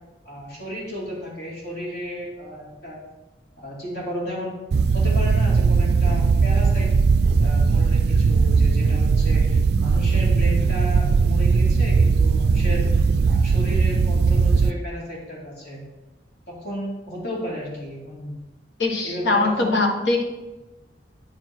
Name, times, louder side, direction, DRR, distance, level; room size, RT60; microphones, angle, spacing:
voice 1, 0.2-3.0 3.6-4.5 4.9-6.9 7.4-15.8 16.5-18.3 19.0-19.7, equal, 65° left, -5 dB, 2.9 m, -33 dB
sound 1, 4.7-14.7, right 4 dB, 65° right, 0.3 m, -18 dB
voice 2, 18.8-20.2, left 2 dB, 90° left, 1 dB, 1.3 m, -21 dB
9.4 x 4.5 x 4.5 m, 1.1 s
head